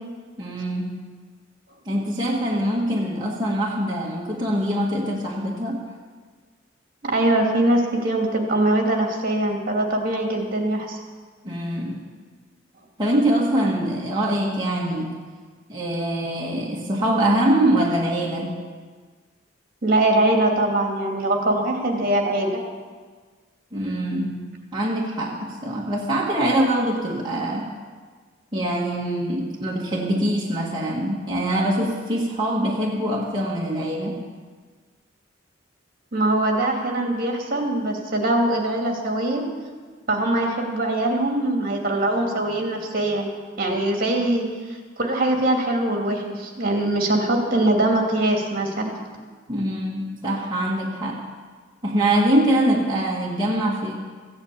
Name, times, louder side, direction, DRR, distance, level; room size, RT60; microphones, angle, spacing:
voice 1, 0.4-1.0 1.9-5.9 11.4-12.1 13.0-15.2 15.7-18.6 23.7-24.4 24.7-27.7 28.5-34.2 49.5-51.2 51.8-53.9, right 1 dB, 20° right, -5 dB, 1.7 m, -23 dB
voice 2, 7.0-11.0 19.8-22.6 36.1-39.4 40.1-43.3 43.6-49.0, right 1 dB, 50° right, 1 dB, 2.5 m, -22 dB
15.5 x 8.8 x 8.6 m, 1.5 s
head